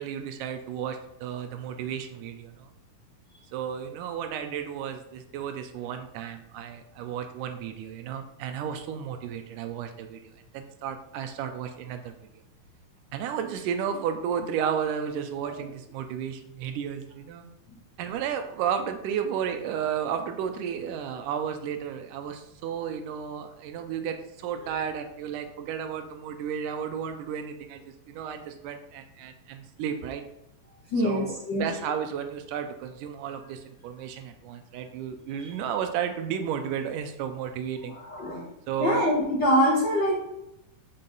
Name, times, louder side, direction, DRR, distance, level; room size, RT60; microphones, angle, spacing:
voice 1, 0.0-2.7 3.5-12.1 13.1-17.5 18.0-30.2 31.0-38.0 38.7-39.1, right 8 dB, 80° right, 7 dB, 2.1 m, -33 dB
voice 2, 30.9-31.6 38.1-38.4 38.8-40.2, equal, 70° left, -4 dB, 1.0 m, -24 dB
5.8 x 5.3 x 3.9 m, 0.85 s
omnidirectional pair, 3.8 m